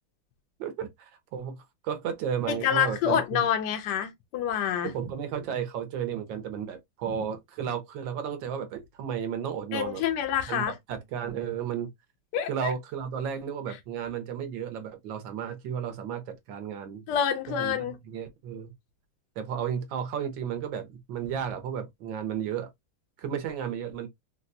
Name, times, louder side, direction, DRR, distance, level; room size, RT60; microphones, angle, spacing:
voice 1, 0.6-3.4 4.8-10.0 10.5-11.9 12.5-17.0 17.5-17.8 18.1-18.7 19.4-22.7 23.2-24.1, right 8 dB, 70° right, 1.4 m, -33 dB
voice 2, 2.5-4.9 9.7-10.8 12.3-12.7 17.1-18.0, left 9 dB, 70° left, 1.1 m, -27 dB
4.0 x 2.2 x 2.5 m
omnidirectional pair, 2.2 m